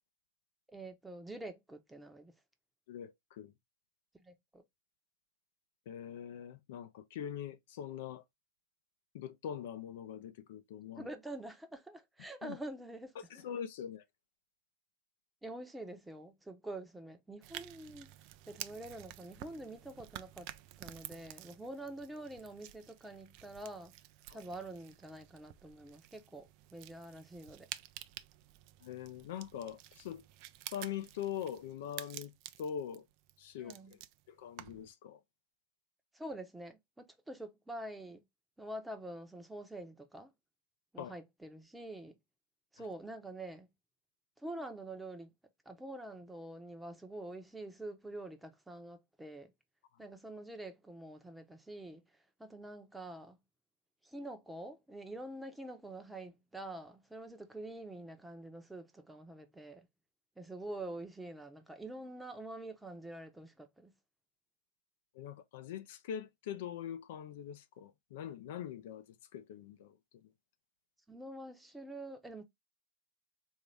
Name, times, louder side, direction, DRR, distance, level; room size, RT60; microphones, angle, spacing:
voice 1, 0.7-2.3 4.2-4.6 10.9-13.4 15.4-18.1 18.5-20.5 20.8-23.9 24.3-27.7 33.6-33.9 36.1-38.2 38.6-40.3 40.9-42.2 42.7-43.7 44.4-45.3 45.7-49.5 50.0-52.0 52.4-53.4 54.0-59.9 60.4-63.9 71.1-72.4, right 1 dB, 5° right, 0.8 m, -46 dB
voice 2, 2.9-3.5 5.9-8.2 9.1-11.1 12.4-12.6 13.3-14.0 24.3-24.4 28.8-30.2 30.7-32.3 32.6-33.1 33.4-34.0 34.3-35.2 41.0-41.2 42.8-42.9 65.1-69.1 69.3-70.3, left 9 dB, 70° left, 0.6 m, -43 dB
sound 1, 17.4-34.9, right 14 dB, 55° right, 0.4 m, -51 dB
3.5 x 2.7 x 3.3 m
hypercardioid pair, 115°, 0 cm